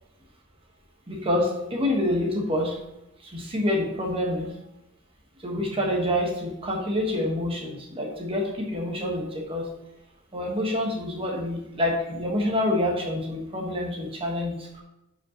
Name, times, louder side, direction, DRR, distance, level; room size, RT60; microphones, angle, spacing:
voice 1, 1.1-2.8 3.2-4.5 5.4-9.7 10.3-14.8, left 1 dB, 25° right, -1 dB, 1.1 m, -27 dB
9.7 x 5.2 x 2.8 m, 0.90 s
head